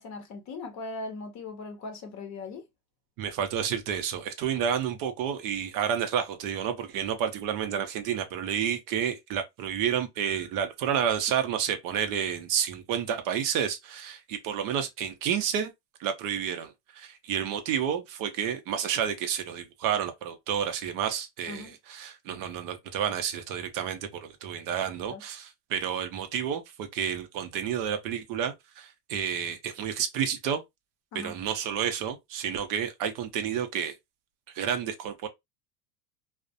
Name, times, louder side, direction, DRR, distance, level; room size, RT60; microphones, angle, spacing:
voice 1, 0.0-2.6 21.5-21.7 25.1-25.2 31.1-31.3, left 3 dB, 40° left, 0.7 m, -39 dB
voice 2, 3.2-15.7 16.0-30.6 31.1-33.9 34.5-35.3, right 8 dB, 45° right, 0.6 m, -30 dB
2.4 x 2.0 x 2.6 m
supercardioid pair, 115°, 45 cm